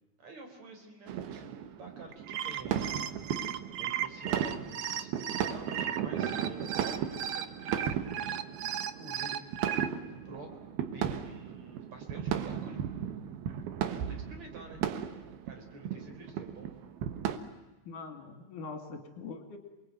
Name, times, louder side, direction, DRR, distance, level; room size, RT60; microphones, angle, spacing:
voice 1, 0.2-2.8 3.8-4.6 4.9-7.9 8.9-9.7 10.0-12.8 13.8-14.8 15.5-16.7, right 2 dB, 45° right, 5 dB, 5.2 m, -49 dB
sound 1, 1.1-17.4, right 9 dB, 90° right, 3.4 m, -36 dB
sound 2, 2.1-9.9, right 9 dB, 65° right, 1.8 m, -36 dB
voice 2, 17.9-19.6, left 4 dB, 60° left, 6 dB, 4.1 m, -43 dB
28.0 x 22.0 x 9.4 m, 1.1 s
omnidirectional pair, 4.3 m